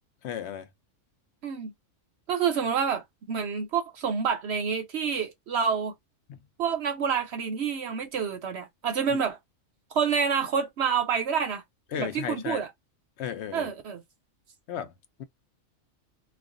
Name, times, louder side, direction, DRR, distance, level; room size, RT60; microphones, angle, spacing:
voice 1, 0.2-0.7 6.3-6.4 9.1-9.2 11.9-12.6 13.2-13.7 14.7-14.9 15.2-15.3, left 9 dB, 60° left, 0.8 m, -34 dB
voice 2, 2.3-5.9 6.6-9.4 9.9-11.6 12.0-12.7 13.5-14.0, right 6 dB, 60° right, 0.8 m, -28 dB
2.5 x 2.3 x 3.6 m
omnidirectional pair, 1.4 m